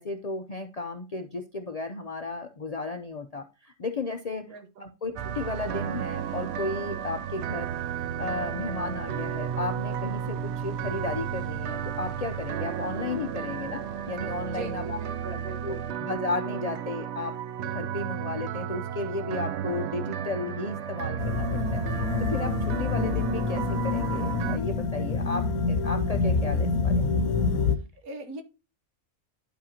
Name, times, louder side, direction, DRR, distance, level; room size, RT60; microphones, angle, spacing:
voice 1, 0.0-7.7 8.2-15.0 15.6-17.3 17.6-27.1, left 3 dB, 55° left, 0.4 m, -34 dB
voice 2, 4.4-4.9 14.5-15.9 28.0-28.4, right 3 dB, 85° right, 1.5 m, -41 dB
sound 1, 5.2-24.6, right 9 dB, 65° right, 0.7 m, -33 dB
sound 2, 21.2-27.8, left 4 dB, 80° left, 1.1 m, -27 dB
11.0 x 5.1 x 2.8 m
omnidirectional pair, 1.5 m